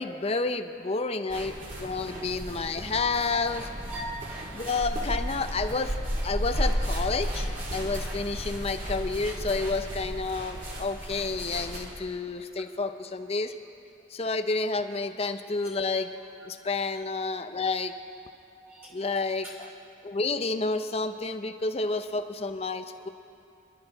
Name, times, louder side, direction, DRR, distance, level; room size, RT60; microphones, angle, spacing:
voice 1, 0.0-3.7 4.5-5.9 6.2-13.5 14.1-16.1 16.5-17.9 18.9-19.5 20.0-23.1, left 3 dB, 30° left, 9 dB, 0.5 m, -30 dB
sound 1, 1.3-11.8, equal, 45° right, 2.7 m, -33 dB
voice 2, 1.9-2.3 3.9-4.7 6.5-6.8 7.4-7.5 11.6-11.7 12.4-12.5 16.9-17.1 18.6-19.0 19.4-19.7 21.9-22.0, right 1 dB, 10° right, -3 dB, 2.3 m, -44 dB
26.0 x 12.0 x 3.9 m, 2.6 s
head